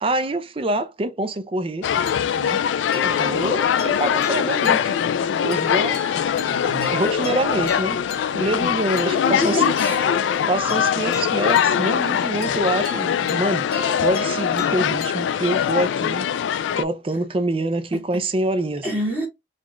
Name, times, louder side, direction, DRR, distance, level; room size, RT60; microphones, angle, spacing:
voice 1, 0.0-1.9 2.4-2.6 3.0-5.0 5.4-6.0 6.9-8.0 8.3-9.6 10.5-13.7 14.0-16.3 16.8-18.9, right 2 dB, 30° right, 0.5 m, -25 dB
sound 1, 1.8-16.8, left 8 dB, 85° left, 0.3 m, -22 dB
sound 2, 2.1-15.9, left 4 dB, 60° left, 0.8 m, -33 dB
voice 2, 6.5-7.0 9.0-10.0 17.9-18.2 18.8-19.3, equal, 10° right, 0.9 m, -27 dB
4.1 x 2.3 x 3.0 m
head